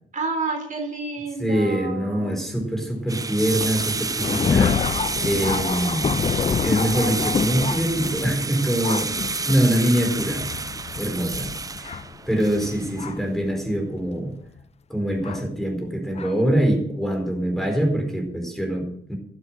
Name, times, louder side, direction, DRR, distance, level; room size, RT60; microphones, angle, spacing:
voice 1, 0.1-2.4, right 3 dB, 40° right, 2 dB, 3.7 m, -30 dB
voice 2, 1.4-6.3 6.6-9.1 9.5-10.5 11.0-12.0 12.3-14.3 14.9-19.2, right 1 dB, ahead, 2 dB, 4.5 m, -24 dB
sound 1, 3.1-13.1, right 4 dB, 15° right, 0.5 m, -30 dB
Thunder, 3.4-13.4 14.1-14.2 15.2-15.4 16.2-16.3, left 6 dB, 30° left, 0.6 m, -28 dB
12.0 x 8.3 x 7.7 m, 0.71 s
cardioid pair, 90°, 20 cm